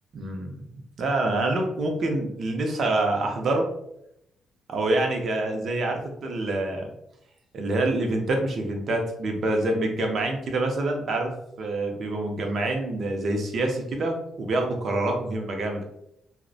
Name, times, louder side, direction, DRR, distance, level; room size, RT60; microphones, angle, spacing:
voice 1, 0.1-0.6 1.0-3.7 4.7-6.9 7.5-15.8, right 2 dB, 55° right, 3 dB, 0.5 m, -26 dB
2.5 x 2.1 x 2.4 m, 0.78 s
cardioid pair, 90°, 0 cm